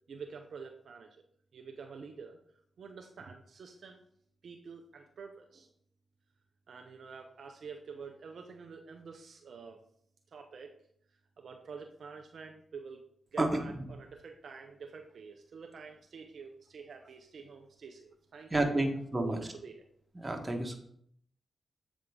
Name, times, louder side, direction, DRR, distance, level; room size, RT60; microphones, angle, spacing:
voice 1, 0.1-1.2 1.5-2.4 2.8-4.0 4.4-5.7 6.7-9.8 10.3-10.8 11.4-13.0 13.3-19.8, right 5 dB, 70° right, 3 dB, 0.6 m, -48 dB
voice 2, 13.4-13.8 18.5-19.4 20.1-20.8, right 1 dB, 25° right, 4 dB, 1.4 m, -30 dB
7.8 x 3.7 x 3.6 m, 0.66 s
supercardioid pair, 40°, 0 cm